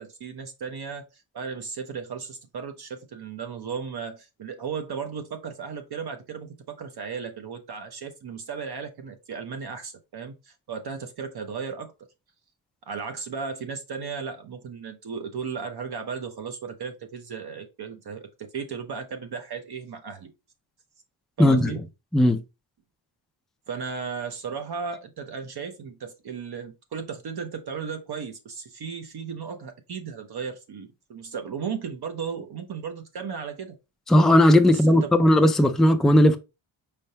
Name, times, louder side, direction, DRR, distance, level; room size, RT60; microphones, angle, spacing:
voice 1, 0.0-11.9 12.9-20.3 21.4-21.8 23.7-33.8 34.7-35.2, right 6 dB, 50° right, 0.7 m, -35 dB
voice 2, 21.4-21.7 22.1-22.4 34.1-36.4, left 1 dB, ahead, 0.3 m, -17 dB
5.4 x 3.4 x 2.7 m
wide cardioid pair, 145°, 49 cm